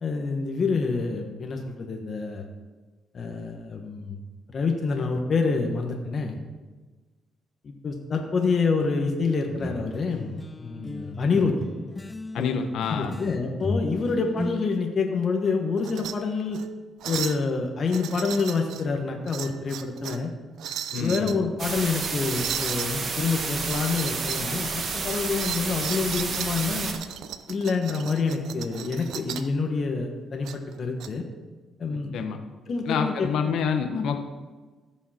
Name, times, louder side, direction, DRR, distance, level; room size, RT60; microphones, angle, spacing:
voice 1, 0.0-2.5 3.1-4.2 4.5-6.4 7.6-11.5 12.3-12.6 12.9-16.6 17.1-20.3 20.9-26.9 27.5-31.2 31.8-32.1 32.7-33.5, left 4 dB, 50° left, 2 dB, 1.4 m, -27 dB
sound 1, 9.5-14.7, left 2 dB, 20° left, 0.4 m, -35 dB
voice 2, 12.3-13.1 20.9-21.3 32.1-32.4 32.8-34.2, left 6 dB, 75° left, 6 dB, 1.1 m, -27 dB
sound 2, 15.8-16.1 16.5-16.7 17.0-17.4 17.9-18.8 19.3-20.2 20.6-21.4 22.0-22.9 23.6-24.5 24.8-29.5 30.4-31.1, right 10 dB, 80° right, 0.6 m, -36 dB
sound 3, 21.6-26.9, right 4 dB, 50° right, 1.4 m, -30 dB
15.5 x 5.6 x 4.4 m, 1.3 s
cardioid pair, 90°, 0 cm